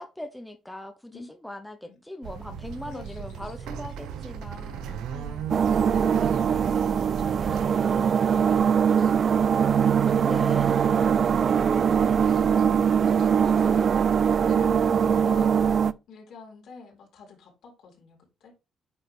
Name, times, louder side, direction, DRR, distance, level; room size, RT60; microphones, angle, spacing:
voice 1, 0.0-5.1 10.2-10.7, left 1 dB, 5° left, 1.0 m, -40 dB
sound 1, 2.2-7.7, right 8 dB, 90° right, 0.8 m, -36 dB
voice 2, 2.7-3.8 5.1-10.2 10.5-11.3 11.6-14.1 14.5-18.6, left 4 dB, 75° left, 3.7 m, -48 dB
sound 2, 5.5-15.9, right 7 dB, 50° right, 0.4 m, -22 dB
8.9 x 4.0 x 3.4 m
cardioid pair, 90°, 0 cm